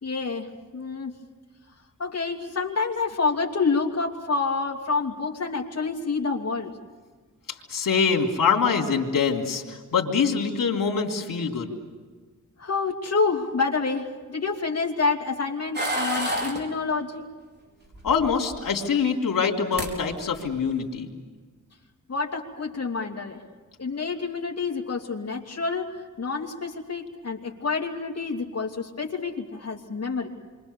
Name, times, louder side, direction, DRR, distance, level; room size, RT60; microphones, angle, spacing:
voice 1, 0.0-1.1 2.0-6.7 12.6-17.3 22.1-23.4 23.8-30.3, left 4 dB, 50° left, -1 dB, 2.8 m, -28 dB
voice 2, 7.5-11.7 18.0-21.1, left 6 dB, 85° left, 1 dB, 3.4 m, -24 dB
sound 1, 15.7-16.6 17.9-18.6 19.4-19.5 19.7-19.9 20.3-20.7, right 1 dB, 30° right, 4.6 m, -29 dB
29.0 x 24.5 x 7.0 m, 1.5 s
wide cardioid pair, 100°, 33 cm